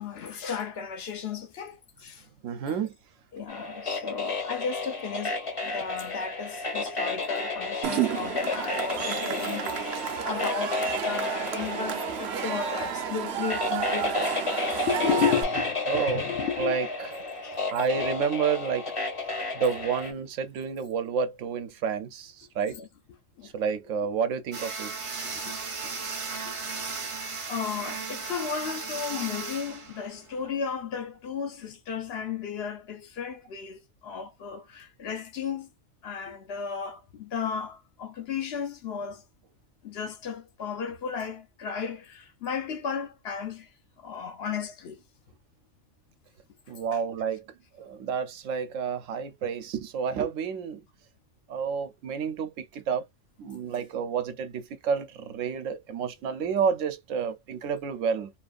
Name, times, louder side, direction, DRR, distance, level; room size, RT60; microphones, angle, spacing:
voice 1, 0.0-2.2 2.7-2.8 3.3-14.4 14.9-16.8 17.4-17.6 18.0-18.1 22.7-22.9 23.4-23.5 25.3-25.5 25.8-26.0 26.5-27.0 27.5-35.7 36.0-39.2 39.8-43.7 44.0-45.0 46.9-47.0, left 7 dB, 60° left, 0.8 m, -34 dB
voice 2, 2.4-2.9 15.9-16.3 16.6-18.9 19.3-22.7 23.4-24.9 46.7-47.4 47.8-50.8 51.5-53.0 53.4-58.3, right 6 dB, 85° right, 1.1 m, -30 dB
sound 1, 3.5-20.1, left 3 dB, 30° left, 0.8 m, -32 dB
Cheering / Crowd, 7.8-15.4, right 9 dB, 65° right, 0.8 m, -31 dB
sound 2, 24.5-30.5, right 4 dB, 35° right, 0.6 m, -36 dB
3.0 x 2.4 x 2.4 m
omnidirectional pair, 1.3 m